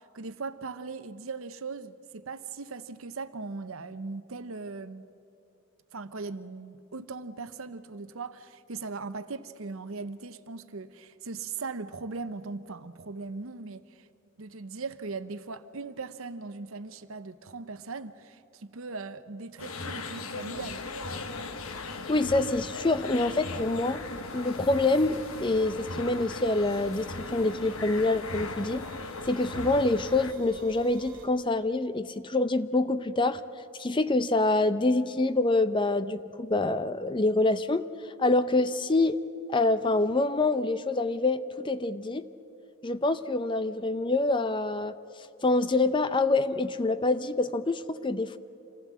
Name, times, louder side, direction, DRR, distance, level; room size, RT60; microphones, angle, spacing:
voice 1, 0.0-5.1 5.9-14.1 14.4-20.8, right 4 dB, 75° right, 0.9 m, -39 dB
sound 1, 19.6-30.3, left 3 dB, 80° left, 1.1 m, -38 dB
sound 2, 20.5-31.3, right 2 dB, 40° right, 3.1 m, -51 dB
voice 2, 22.1-24.0 24.3-28.8 29.3-33.4 33.8-37.9 38.2-39.2 39.5-42.3 42.8-44.9 45.4-48.4, left 2 dB, 25° left, 0.5 m, -26 dB
26.5 x 16.0 x 7.5 m
head